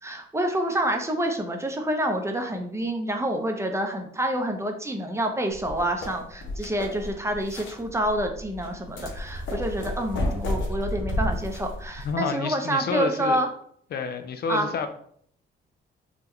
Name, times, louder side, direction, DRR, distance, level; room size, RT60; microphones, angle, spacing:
voice 1, 0.0-13.5 14.5-14.7, right 1 dB, 15° right, 3 dB, 0.6 m, -28 dB
sound 1, 5.5-12.1, left 1 dB, 75° left, 0.8 m, -32 dB
voice 2, 12.0-13.4 13.9-14.9, left 5 dB, 55° left, 8 dB, 0.4 m, -29 dB
3.5 x 2.2 x 3.1 m, 0.62 s
cardioid pair, 90°, 20 cm